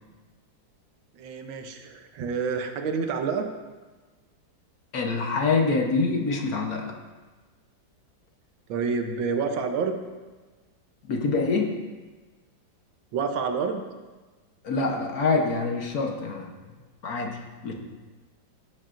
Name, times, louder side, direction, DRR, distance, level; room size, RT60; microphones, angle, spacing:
voice 1, 1.1-3.5 8.7-10.0 13.1-13.8, right 5 dB, 85° right, 5 dB, 1.6 m, -28 dB
voice 2, 4.9-7.0 11.0-11.8 14.6-16.5 17.0-17.4 17.6-17.7, left 3 dB, 55° left, 1 dB, 1.3 m, -25 dB
16.0 x 7.9 x 2.6 m, 1.3 s
omnidirectional pair, 2.1 m